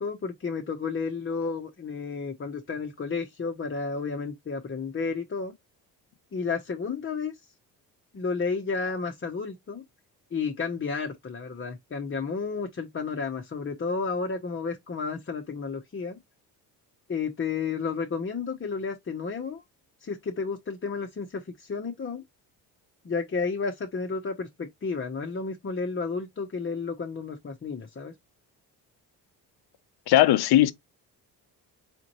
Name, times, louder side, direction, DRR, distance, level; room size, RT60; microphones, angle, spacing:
voice 1, 0.0-5.5 6.3-7.4 8.1-9.8 10.3-16.2 17.1-19.6 20.0-22.2 23.0-28.1, left 4 dB, 25° left, 0.9 m, -32 dB
voice 2, 30.1-30.7, left 13 dB, 55° left, 0.7 m, -18 dB
4.3 x 2.5 x 3.0 m
hypercardioid pair, 55°, 45 cm